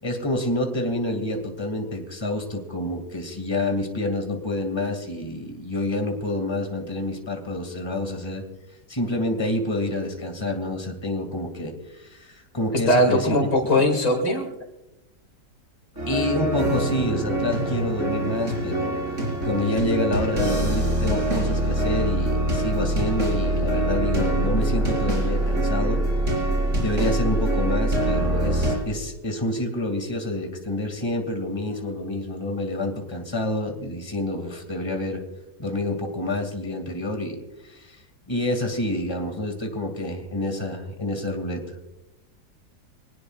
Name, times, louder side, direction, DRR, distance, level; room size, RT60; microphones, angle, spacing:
voice 1, 0.0-8.4 8.9-13.3 13.7-14.0 16.1-26.0 26.8-35.2 35.6-37.4 37.6-38.0 38.3-41.6, left 1 dB, 15° left, 4 dB, 2.3 m, -28 dB
voice 2, 12.9-14.5, left 1 dB, 90° left, 2 dB, 3.2 m, -20 dB
sound 1, 16.0-28.8, right 1 dB, 45° right, 5.2 m, -24 dB
25.0 x 19.0 x 2.4 m, 0.97 s
omnidirectional pair, 1.7 m